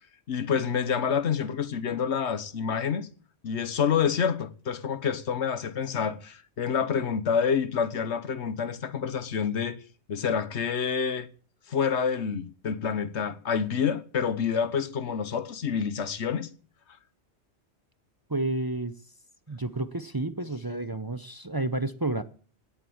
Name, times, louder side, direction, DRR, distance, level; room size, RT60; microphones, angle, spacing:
voice 1, 0.3-3.1 3.4-9.8 10.1-11.3 11.7-16.5, left 7 dB, 85° left, 1.3 m, -28 dB
voice 2, 18.3-18.9 19.5-22.2, right 2 dB, 25° right, 0.7 m, -30 dB
17.0 x 7.6 x 8.6 m
omnidirectional pair, 1.1 m